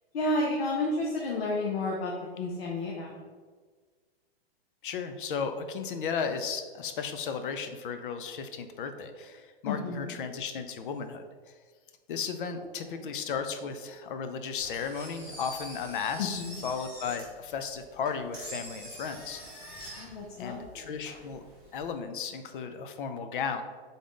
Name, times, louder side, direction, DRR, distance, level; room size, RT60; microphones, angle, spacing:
voice 1, 0.1-3.2 9.6-10.2 12.9-13.2 16.2-16.6 20.0-20.9, left 2 dB, 70° left, -2 dB, 0.8 m, -32 dB
voice 2, 4.8-11.3 12.1-19.4 20.4-21.4 21.7-23.6, left 6 dB, 55° left, 8 dB, 0.5 m, -35 dB
Engine, 14.6-21.9, equal, 10° left, 1.1 m, -45 dB
3.9 x 3.6 x 3.7 m, 1.5 s
hypercardioid pair, 170°, 31 cm